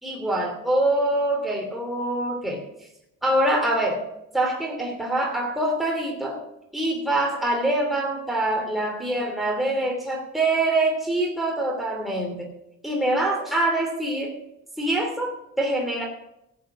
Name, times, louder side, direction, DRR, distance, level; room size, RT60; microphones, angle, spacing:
voice 1, 0.0-2.7 3.2-4.0 4.3-6.4 6.7-12.5 12.8-14.3 14.8-16.1, right 1 dB, ahead, 0 dB, 2.8 m, -24 dB
13.5 x 7.6 x 6.1 m, 0.85 s
cardioid pair, 90°, 30 cm